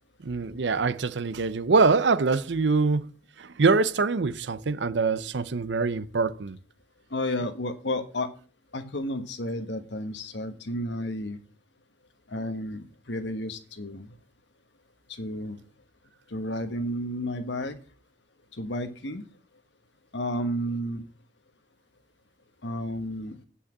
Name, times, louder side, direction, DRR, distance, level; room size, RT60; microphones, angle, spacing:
voice 1, 0.2-3.1 3.4-6.6, right 4 dB, 75° right, 0.6 m, -24 dB
voice 2, 7.1-8.3 8.7-11.4 12.3-14.1 15.1-15.6 16.3-17.8 18.6-19.2 20.1-21.0 22.6-23.4, left 1 dB, 75° left, 1.3 m, -32 dB
8.2 x 5.7 x 7.4 m
head